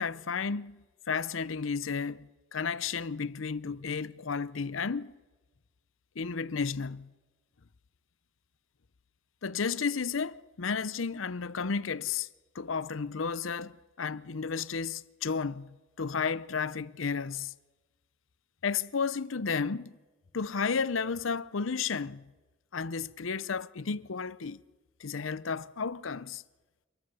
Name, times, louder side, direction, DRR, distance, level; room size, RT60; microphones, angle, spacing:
voice 1, 0.0-5.1 6.2-7.1 9.4-12.3 12.5-15.7 16.0-17.5 18.6-19.9 20.3-22.2 22.7-24.6 25.0-26.4, left 5 dB, 80° left, 0.7 m, -33 dB
28.0 x 13.5 x 8.3 m
head